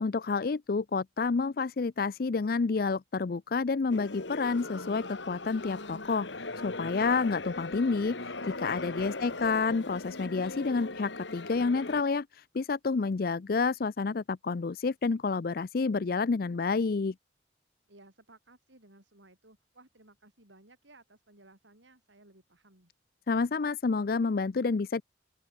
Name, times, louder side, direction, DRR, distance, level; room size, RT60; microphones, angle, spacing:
voice 1, 0.0-6.3 6.6-17.1 23.3-25.0, left 4 dB, 50° left, 0.5 m, -29 dB
sound 1, 3.9-12.0, left 2 dB, 75° left, 3.1 m, -39 dB
voice 2, 9.0-9.5 17.9-22.9, right 2 dB, 80° right, 6.2 m, -58 dB
open air
head